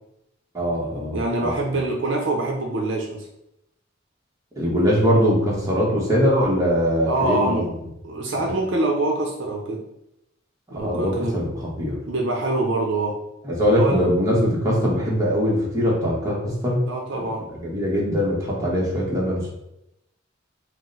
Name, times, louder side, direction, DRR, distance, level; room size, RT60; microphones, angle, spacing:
voice 1, 0.5-1.5 4.6-7.7 8.4-8.5 10.7-12.0 13.4-16.8 17.1-19.5, equal, 15° right, -5 dB, 1.2 m, -22 dB
voice 2, 1.1-3.3 7.1-7.7 8.0-9.8 10.7-11.4 12.1-13.2 13.7-14.1 16.9-17.4, right 2 dB, 70° right, 0 dB, 0.7 m, -25 dB
4.7 x 2.2 x 3.9 m, 0.83 s
head